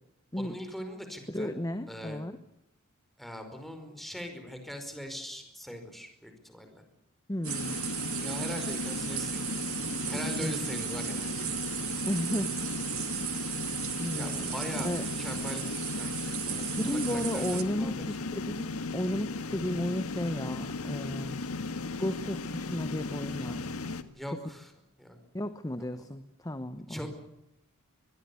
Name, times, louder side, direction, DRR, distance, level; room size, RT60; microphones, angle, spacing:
voice 1, 0.4-1.5 1.9-2.2 3.2-6.8 8.2-9.5 10.1-11.5 14.2-18.2 24.2-24.7 25.0-25.2 25.8-25.9 26.9-27.1, equal, ahead, 6 dB, 5.0 m, -41 dB
voice 2, 1.3-2.3 7.3-7.8 10.4-10.5 12.0-12.9 14.0-14.5 14.8-15.0 16.8-21.4 22.0-23.7 25.3-27.1, left 1 dB, 15° left, 10 dB, 1.0 m, -34 dB
sound 1, 7.4-17.6, right 15 dB, 75° right, 1.7 m, -36 dB
sound 2, 7.5-24.0, left 3 dB, 85° left, 1.7 m, -36 dB
24.5 x 21.5 x 7.1 m, 0.88 s
head